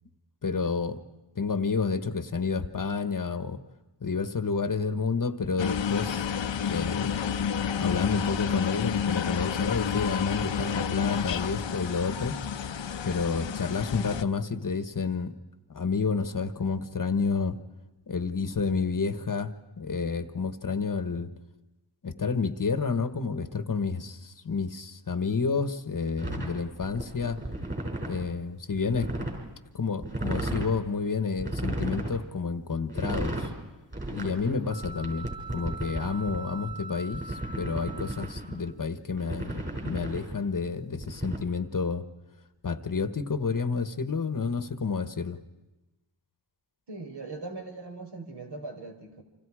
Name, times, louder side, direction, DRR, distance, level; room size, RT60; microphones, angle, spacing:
voice 1, 0.4-1.0 1.3-3.6 4.0-6.3 6.6-7.2 7.8-12.4 13.0-15.3 15.7-17.6 18.1-19.5 19.8-21.3 22.0-27.4 28.1-29.3 29.7-33.5 34.1-42.0 42.6-45.4, left 5 dB, 45° left, 11 dB, 1.3 m, -30 dB
sound 1, 5.6-14.2, left 7 dB, 75° left, 1.0 m, -30 dB
sound 2, 26.2-28.3 28.7-29.4 30.0-30.8 31.4-32.2 32.9-33.5 33.9-36.4 37.1-38.5 39.1-40.4 41.0-41.4, right 1 dB, 25° right, 6.2 m, -34 dB
sound 3, 34.7-38.7, right 4 dB, 25° left, 1.3 m, -43 dB
voice 2, 46.9-49.2, right 3 dB, 60° right, 3 dB, 4.6 m, -40 dB
30.0 x 26.5 x 4.9 m, 1.1 s
wide cardioid pair, 150°, 46 cm